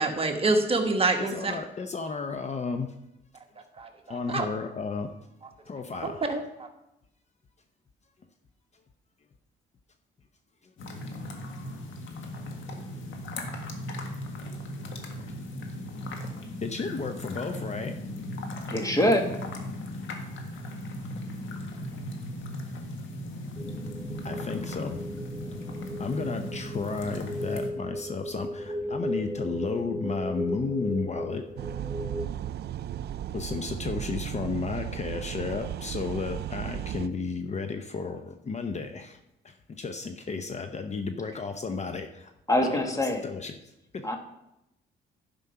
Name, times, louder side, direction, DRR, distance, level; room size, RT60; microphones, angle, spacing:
voice 1, 0.0-1.6 3.6-4.5 6.0-6.7, right 2 dB, 30° right, 4 dB, 1.4 m, -27 dB
voice 2, 1.2-2.9 4.1-5.1 5.7-6.2 16.6-18.0 24.2-25.1 26.0-31.5 33.3-42.3 42.6-44.1, left 4 dB, 35° left, 7 dB, 0.7 m, -33 dB
sound 1, 10.8-27.7, left 1 dB, 75° left, 1.6 m, -37 dB
voice 3, 18.7-19.3 42.5-43.2 44.0-44.2, left 1 dB, 15° left, 4 dB, 1.6 m, -24 dB
sound 2, 23.6-32.3, equal, 5° right, 0.8 m, -36 dB
sound 3, 31.6-37.1, right 11 dB, 55° right, 0.4 m, -35 dB
11.0 x 5.3 x 5.7 m, 0.86 s
cardioid pair, 90°, 20 cm